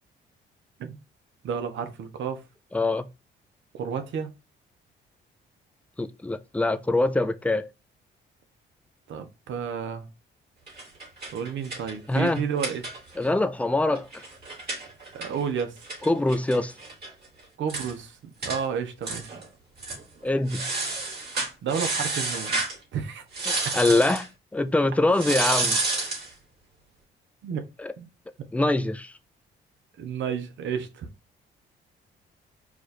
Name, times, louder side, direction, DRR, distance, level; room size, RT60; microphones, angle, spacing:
voice 1, 1.4-2.4 3.7-4.3 9.1-10.0 11.3-12.9 15.1-15.7 17.6-19.4 21.6-22.6 22.9-23.2 23.6-23.8 27.4-27.6 28.0-28.1 30.0-31.1, right 7 dB, 70° right, 0.9 m, -31 dB
voice 2, 2.7-3.0 6.0-7.7 12.1-12.4 13.2-14.2 16.1-16.7 20.2-20.6 23.5-24.2 24.5-25.8 27.8-27.9 28.5-29.1, left 2 dB, 5° left, 0.5 m, -24 dB
sound 1, 10.7-13.3 13.6-13.7 14.0-17.1 17.4-17.5 17.7-17.9 18.4-18.6 19.0-19.5 19.8-20.0 20.5-22.8 23.3-24.3 25.1-26.3, right 3 dB, 55° right, 2.7 m, -30 dB
4.8 x 2.5 x 4.2 m
cardioid pair, 90°, 20 cm